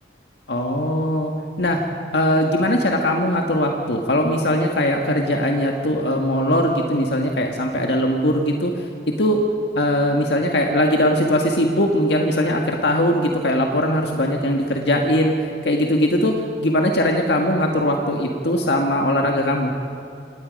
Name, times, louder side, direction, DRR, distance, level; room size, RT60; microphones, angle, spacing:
voice 1, 0.5-1.3 1.6-1.8 2.1-8.7 9.2-9.4 9.7-15.3 15.6-16.3 16.6-19.7, left 1 dB, 70° left, 2 dB, 1.7 m, -20 dB
27.0 x 18.5 x 5.3 m, 2.6 s
head